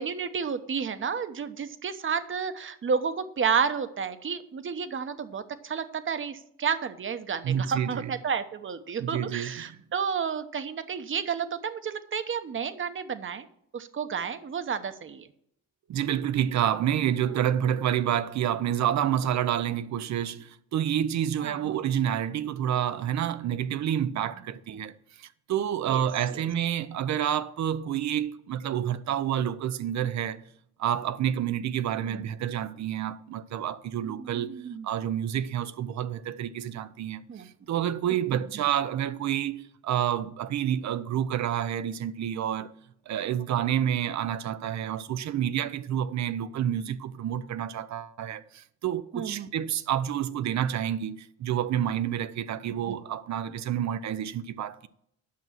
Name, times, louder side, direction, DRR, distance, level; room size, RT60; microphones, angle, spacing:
voice 1, 0.0-13.5 13.7-15.3 21.4-21.8 25.9-26.0 32.0-32.3 34.0-34.9 37.3-37.5 38.3-38.4 46.7-46.8 49.1-49.5 52.9-53.0, right 6 dB, 40° right, 1.0 m, -31 dB
voice 2, 7.4-8.1 9.0-9.8 15.9-30.4 30.8-42.7 43.1-54.9, right 10 dB, 65° right, 0.7 m, -29 dB
8.6 x 6.1 x 7.3 m
cardioid pair, 90°, 30 cm